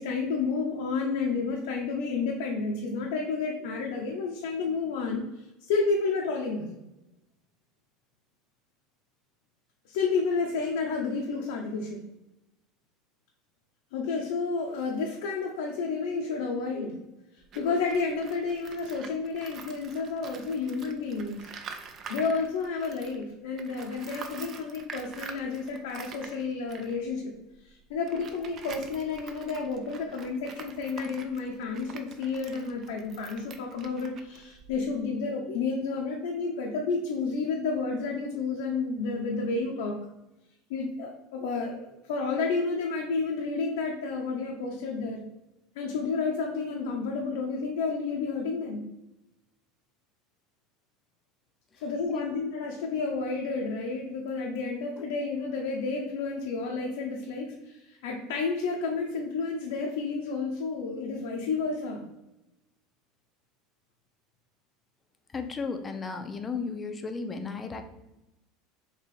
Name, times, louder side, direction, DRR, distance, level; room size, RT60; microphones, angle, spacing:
voice 1, 0.0-6.7 9.9-12.0 13.9-17.0 17.3-21.5 22.1-27.3 27.6-40.0 40.7-45.2 45.8-48.8 51.8-62.0, left 4 dB, 85° left, 0 dB, 0.6 m, -31 dB
Tools, 17.4-23.2 23.5-35.0, right 5 dB, 40° right, 0.5 m, -46 dB
voice 2, 65.3-67.8, left 4 dB, 20° left, 7 dB, 0.5 m, -34 dB
3.3 x 2.9 x 4.5 m, 0.95 s
supercardioid pair, 135°, 0 cm